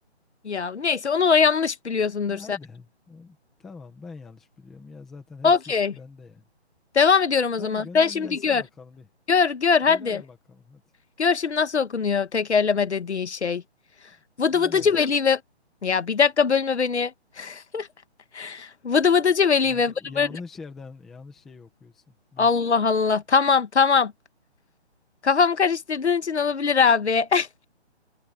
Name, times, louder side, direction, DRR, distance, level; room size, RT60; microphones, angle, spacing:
voice 1, 0.4-2.6 5.4-5.9 6.9-8.6 9.3-10.2 11.2-13.6 14.4-15.4 15.8-17.1 17.4-17.9 18.3-20.3 22.4-24.1 25.2-27.6, left 5 dB, 75° left, 1.7 m, -21 dB
voice 2, 2.3-6.4 7.6-9.1 9.8-10.8 14.1-14.2 14.5-15.0 19.6-22.5, left 4 dB, ahead, 0.7 m, -44 dB
hypercardioid pair, 165°, 34 cm